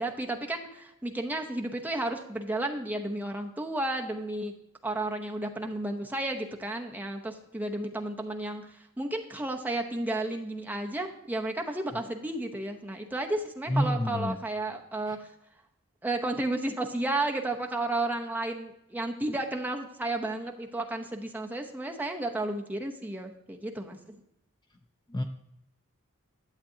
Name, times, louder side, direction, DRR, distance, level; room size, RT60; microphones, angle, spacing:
voice 1, 0.0-4.5 4.8-15.3 16.0-24.2, right 2 dB, 10° right, 2 dB, 0.8 m, -32 dB
voice 2, 13.7-14.4 15.1-15.2 25.1-25.2, equal, 20° left, 5 dB, 0.5 m, -28 dB
11.5 x 7.6 x 2.8 m, 0.81 s
head